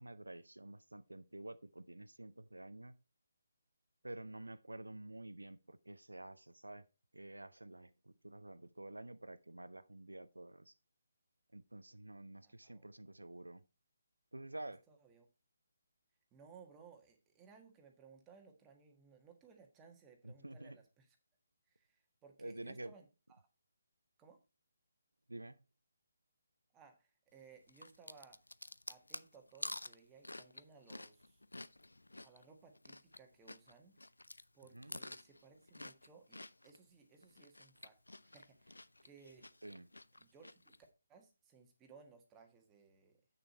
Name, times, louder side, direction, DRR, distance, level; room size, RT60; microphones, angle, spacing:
voice 1, 0.0-2.9 4.0-6.9 7.1-10.7 11.5-13.6 14.3-14.8 20.2-20.8 22.4-22.9 25.3-25.6 34.7-34.9 39.6-39.9, right 1 dB, 75° right, 0.6 m, -50 dB
voice 2, 12.4-12.9 14.9-15.3 16.3-21.2 21.7-23.5 24.2-24.4 26.7-28.4 28.9-31.4 32.2-34.0 34.5-39.5 40.2-40.6 41.1-43.2, right 5 dB, 15° right, 1.5 m, -62 dB
sound 1, 27.7-33.2 33.5-36.8 37.2-40.8, left 2 dB, 75° left, 0.5 m, -50 dB
8.6 x 6.7 x 4.2 m
figure-of-eight pair, 145°, 0 cm